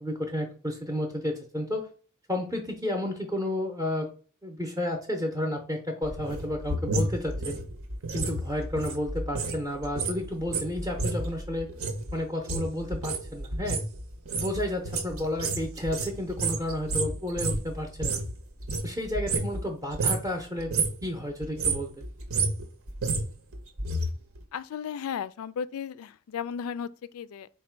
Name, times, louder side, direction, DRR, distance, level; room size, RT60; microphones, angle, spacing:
voice 1, 0.0-1.9 2.3-4.1 4.4-7.6 8.1-11.7 12.1-13.8 14.4-18.2 18.8-20.7 21.0-21.9, left 1 dB, 15° right, 0.6 m, -31 dB
sound 1, 6.0-9.6 9.8-18.3 18.6-19.7 19.9-20.3 20.6-21.0 21.4-24.1 24.4-24.5, right 3 dB, 70° right, 0.8 m, -30 dB
voice 2, 24.5-27.5, left 7 dB, 80° left, 0.3 m, -35 dB
4.2 x 2.2 x 4.4 m
head